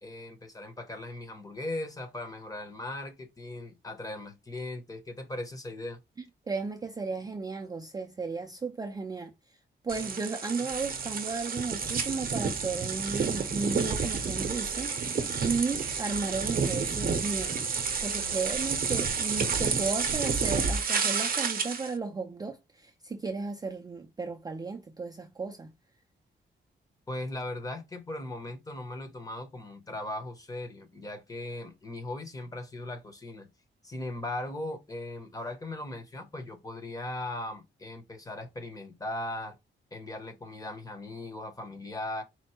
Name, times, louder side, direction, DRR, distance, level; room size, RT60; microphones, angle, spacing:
voice 1, 0.0-6.0 27.1-33.5 33.8-39.6 39.9-42.2, left 1 dB, 20° left, 0.8 m, -38 dB
voice 2, 6.5-9.3 9.8-25.7, right 4 dB, 20° right, 0.4 m, -34 dB
sound 1, 9.9-21.9, right 5 dB, 45° right, 0.8 m, -30 dB
4.4 x 2.0 x 4.2 m
wide cardioid pair, 155°, 20 cm